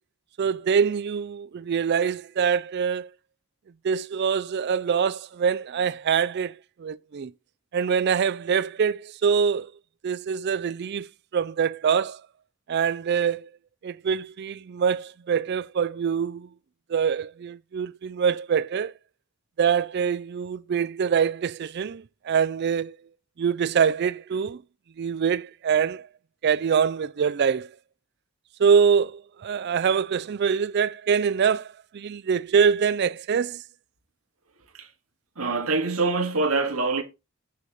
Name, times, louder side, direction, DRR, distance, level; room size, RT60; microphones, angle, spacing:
voice 1, 0.4-3.1 3.8-7.3 7.7-9.7 10.0-11.1 11.3-12.2 12.7-13.5 13.8-16.5 16.9-18.9 19.6-23.0 23.4-24.6 25.0-26.1 26.4-27.7 28.6-33.6, right 6 dB, 50° right, 0.4 m, -24 dB
voice 2, 35.4-37.0, right 3 dB, 75° right, 2.0 m, -24 dB
8.6 x 6.7 x 4.1 m
head